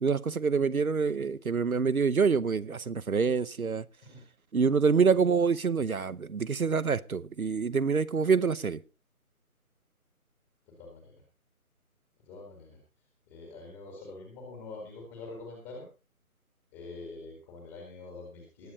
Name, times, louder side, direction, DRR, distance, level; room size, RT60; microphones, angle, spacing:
voice 1, 0.0-3.8 4.5-8.8, right 5 dB, 70° right, 0.9 m, -26 dB
voice 2, 10.7-11.1 12.3-12.8 13.3-15.9 16.7-18.7, left 3 dB, 10° left, 1.8 m, -45 dB
19.0 x 7.0 x 3.9 m
figure-of-eight pair, 155°, 44 cm